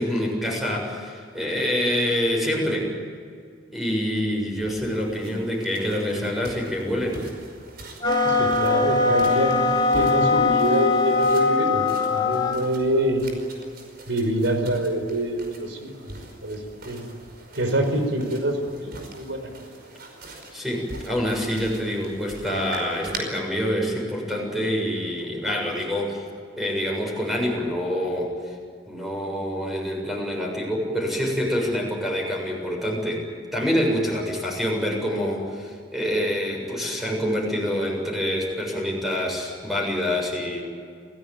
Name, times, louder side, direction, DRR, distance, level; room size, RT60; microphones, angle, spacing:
voice 1, 0.0-2.9 3.7-7.3 20.5-26.2 26.6-28.6 28.9-33.3 33.5-40.6, equal, ahead, 0 dB, 7.2 m, -26 dB
sound 1, 4.6-23.2, right 2 dB, 55° right, 5.3 m, -43 dB
sound 2, 8.0-12.6, left 3 dB, 25° left, 2.4 m, -21 dB
voice 2, 8.2-11.8 12.1-13.2 14.1-17.0 17.5-19.5, right 1 dB, 75° right, 6 dB, 5.3 m, -26 dB
28.5 x 17.5 x 9.2 m, 2.2 s
head